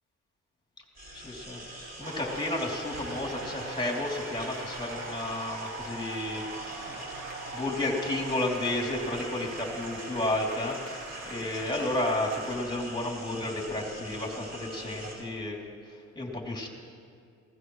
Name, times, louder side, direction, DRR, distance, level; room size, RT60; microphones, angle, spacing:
sound 1, 1.0-15.2, right 1 dB, 30° right, 4.0 m, -44 dB
voice 1, 1.1-6.4 6.9-7.0 7.5-15.6 15.9-16.7, left 1 dB, 15° left, -1 dB, 3.2 m, -32 dB
sound 2, 2.0-12.6, right 2 dB, 70° right, 2.5 m, -41 dB
20.0 x 17.0 x 3.2 m, 2.3 s
cardioid pair, 90°, 30 cm